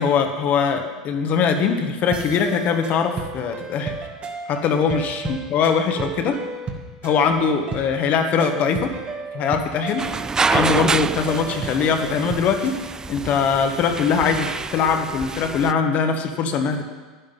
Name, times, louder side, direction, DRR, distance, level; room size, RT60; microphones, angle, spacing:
voice 1, 0.0-3.9 4.5-6.4 7.0-8.9 9.3-10.2 10.5-12.8 13.1-16.8, left 6 dB, 45° left, 6 dB, 1.5 m, -21 dB
sound 1, 2.1-12.8, right 4 dB, 35° right, 1.8 m, -34 dB
sound 2, 10.0-15.7, right 4 dB, 15° right, 0.4 m, -27 dB
11.5 x 10.5 x 5.5 m, 1.4 s
hypercardioid pair, 90°, 4 cm